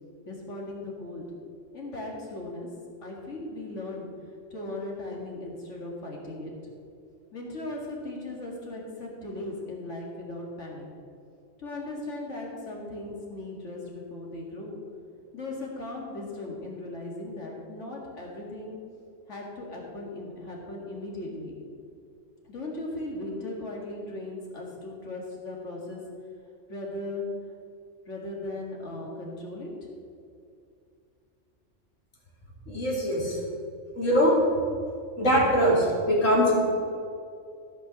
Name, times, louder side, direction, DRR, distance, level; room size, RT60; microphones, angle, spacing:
voice 1, 0.3-1.2 1.7-2.7 3.0-4.1 4.5-6.5 7.3-10.9 11.6-14.8 15.3-18.8 19.3-21.5 22.5-26.0 26.7-27.2 28.1-29.7, left 2 dB, 70° left, -2 dB, 2.5 m, -37 dB
voice 2, 32.7-33.4 33.9-34.4 35.2-36.6, equal, 85° left, -4 dB, 3.2 m, -22 dB
14.5 x 5.8 x 6.4 m, 2.5 s
omnidirectional pair, 1.3 m